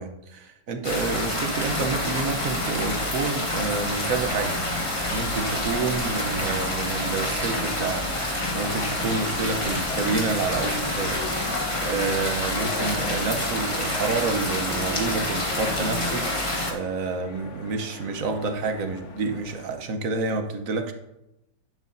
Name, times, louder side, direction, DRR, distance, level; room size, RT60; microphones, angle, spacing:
voice 1, 0.0-20.9, right 4 dB, 55° right, 6 dB, 1.2 m, -29 dB
sound 1, 0.8-16.7, left 1 dB, 20° left, 1.3 m, -27 dB
sound 2, 7.6-19.8, left 4 dB, 50° left, 1.1 m, -39 dB
11.0 x 8.6 x 2.7 m, 0.88 s
omnidirectional pair, 1.9 m